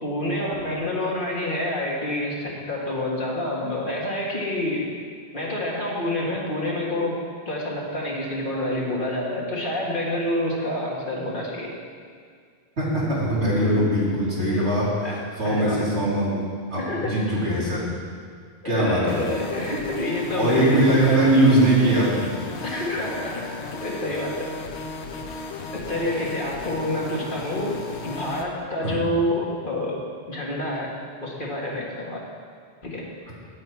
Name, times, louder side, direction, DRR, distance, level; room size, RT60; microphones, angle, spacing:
voice 1, 0.0-4.8 5.3-7.2 7.4-11.7 13.8-13.9 15.0-15.2 15.4-15.9 16.8-17.1 18.6-21.3 22.6-23.5 23.8-24.4 25.9-27.8 28.0-30.0 30.3-30.9 31.2-32.2 32.8-33.0, left 1 dB, 50° left, -3 dB, 1.8 m, -28 dB
voice 2, 12.8-16.3 16.7-17.8 18.6-19.1 20.3-22.3 22.6-22.8 26.1-26.3 28.8-29.0, right 1 dB, 80° right, -8 dB, 3.3 m, -21 dB
sound 1, 19.1-28.4, left 3 dB, 85° left, 1.1 m, -35 dB
9.6 x 9.1 x 4.6 m, 2.1 s
omnidirectional pair, 1.1 m